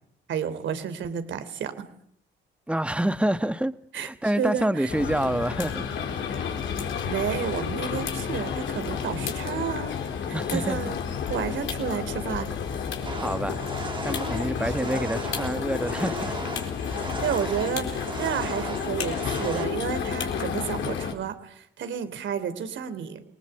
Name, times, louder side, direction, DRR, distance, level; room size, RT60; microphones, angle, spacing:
voice 1, 0.3-1.7 3.9-4.1 4.3-4.9 7.0-9.9 10.3-11.0 11.3-12.5 14.8-15.0 17.0-23.2, right 8 dB, 70° right, 3.2 m, -31 dB
voice 2, 2.7-5.9 6.2-6.4 10.3-10.8 13.1-13.6 14.0-16.4, right 1 dB, 5° right, 1.3 m, -27 dB
sound 1, 4.9-21.1, left 7 dB, 75° left, 4.2 m, -31 dB
sound 2, 13.1-19.6, right 3 dB, 25° right, 2.2 m, -37 dB
29.0 x 20.0 x 8.0 m
cardioid pair, 90°, 20 cm